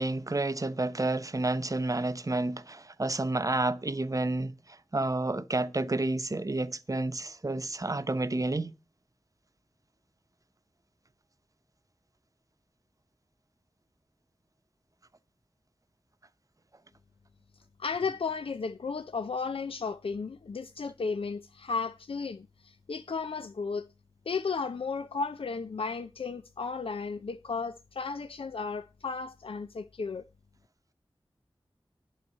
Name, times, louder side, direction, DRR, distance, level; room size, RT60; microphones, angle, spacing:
voice 1, 0.0-4.5 4.9-8.7, right 2 dB, 40° right, 0.8 m, -30 dB
voice 2, 17.8-23.9 24.3-30.2, left 4 dB, 85° left, 0.5 m, -34 dB
11.0 x 4.7 x 8.1 m
wide cardioid pair, 50°, 9 cm